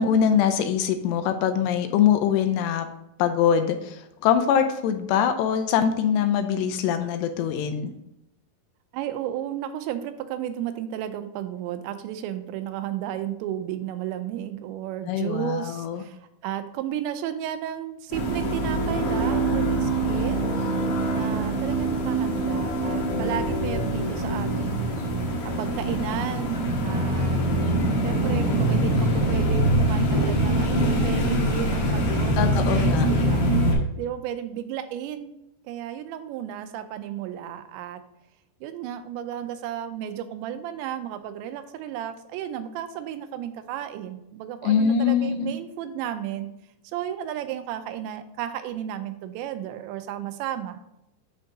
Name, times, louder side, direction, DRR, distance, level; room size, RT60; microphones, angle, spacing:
voice 1, 0.0-2.9 3.2-7.9 15.1-16.0 32.4-33.1 44.6-45.6, left 8 dB, 85° left, 7 dB, 2.6 m, -23 dB
voice 2, 8.9-16.2 16.4-20.4 21.1-25.0 25.6-27.4 28.0-33.5 34.0-35.3 35.7-38.0 38.6-46.5 46.9-50.8, right 10 dB, 85° right, 9 dB, 2.9 m, -33 dB
sound 1, 18.1-33.7, right 1 dB, 60° left, 2.7 m, -24 dB
10.0 x 3.7 x 3.8 m, 0.85 s
omnidirectional pair, 5.1 m